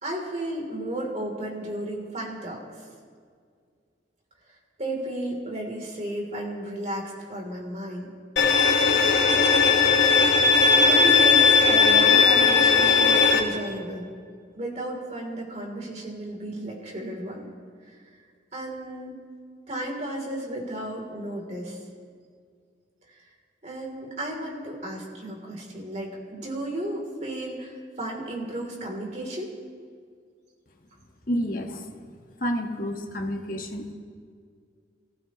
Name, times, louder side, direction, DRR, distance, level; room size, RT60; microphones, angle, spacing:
voice 1, 0.0-2.6 4.8-8.1 10.9-14.1 14.6-17.5 17.9-18.0 18.5-19.2 19.7-21.8 23.6-29.5, right 1 dB, 35° right, -1 dB, 3.5 m, -33 dB
Bowed string instrument, 8.4-13.4, left 5 dB, 65° left, 1.7 m, -18 dB
voice 2, 31.3-31.9 32.4-33.9, equal, 45° left, 2 dB, 1.7 m, -29 dB
28.5 x 15.0 x 3.2 m, 2.1 s
head